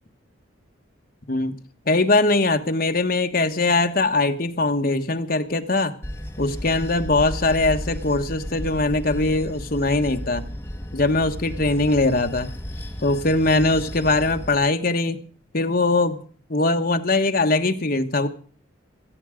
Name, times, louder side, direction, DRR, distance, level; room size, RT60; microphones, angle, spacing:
voice 1, 1.9-5.9 6.4-10.5 10.9-12.5 13.0-15.2 15.5-16.2 16.5-18.3, left 2 dB, 45° left, 6 dB, 1.3 m, -21 dB
Bell / Train, 6.0-14.6, equal, 10° left, 1.6 m, -34 dB
17.0 x 13.5 x 5.0 m, 0.42 s
head